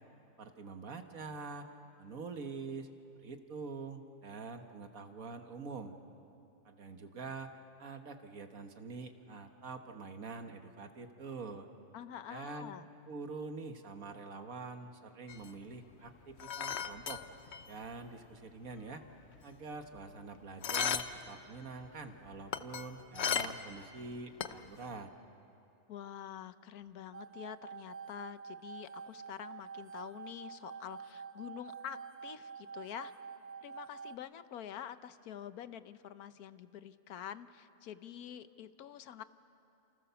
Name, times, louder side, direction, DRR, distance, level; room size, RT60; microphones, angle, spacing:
voice 1, 0.4-1.7 2.0-2.9 3.2-5.9 6.7-11.7 12.3-12.7 13.1-17.2 17.7-19.0 19.4-25.1, right 4 dB, 70° right, 6 dB, 1.9 m, -45 dB
voice 2, 11.9-12.9 25.9-33.1 33.6-39.2, left 10 dB, 80° left, 13 dB, 1.3 m, -47 dB
sound 1, 15.3-18.0 18.2-18.3 18.6-20.2 20.6-21.3 21.6-23.8 24.1-24.9, left 7 dB, 55° left, 1.0 m, -36 dB
sound 2, 27.1-34.2, right 6 dB, 45° right, 0.5 m, -48 dB
29.5 x 28.5 x 7.0 m, 2.7 s
omnidirectional pair, 1.5 m